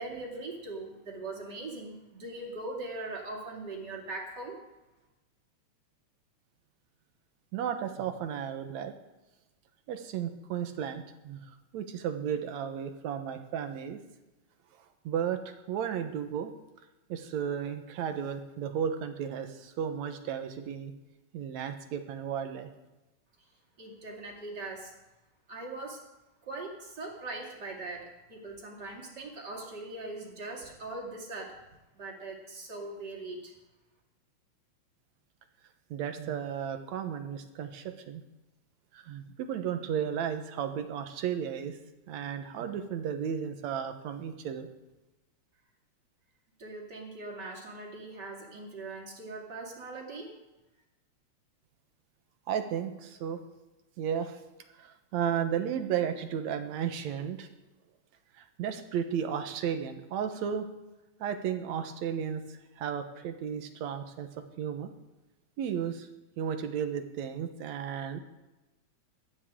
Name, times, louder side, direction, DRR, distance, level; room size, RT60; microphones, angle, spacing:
voice 1, 0.0-4.6 23.4-23.5 23.8-24.9 25.5-26.0 26.4-31.6 31.9-33.5 46.6-50.3, right 2 dB, 35° right, -1 dB, 3.0 m, -41 dB
voice 2, 7.5-8.9 9.9-14.0 14.8-16.5 17.1-20.9 21.3-22.7 35.9-38.2 38.9-41.8 42.1-44.7 52.5-53.4 54.0-54.4 54.7-57.5 58.3-60.7 61.2-64.9 65.6-66.1 66.4-68.2, right 8 dB, 75° right, 7 dB, 2.3 m, -34 dB
18.5 x 13.0 x 3.7 m, 1.0 s
omnidirectional pair, 3.3 m